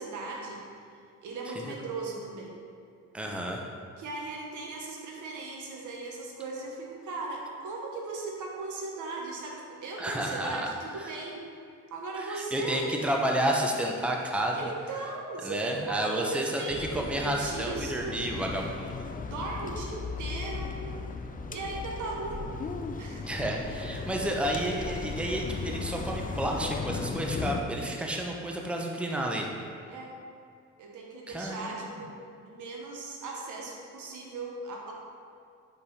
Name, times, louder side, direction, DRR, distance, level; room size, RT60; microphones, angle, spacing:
voice 1, 0.0-2.6 4.0-11.4 11.9-12.9 14.6-18.3 19.2-20.8 21.5-22.4 23.0-23.2 24.0-24.2 29.9-30.2 30.8-34.9, right 3 dB, 80° right, -1 dB, 1.3 m, -38 dB
voice 2, 3.1-3.6 10.0-10.7 11.0-11.1 12.1-14.7 15.4-19.1 23.2-29.5 31.3-32.0, right 1 dB, 5° right, 0 dB, 0.8 m, -31 dB
sound 1, 16.7-27.6, left 4 dB, 30° left, 0.5 m, -36 dB
5.2 x 5.0 x 5.5 m, 2.3 s
cardioid pair, 90°, 30 cm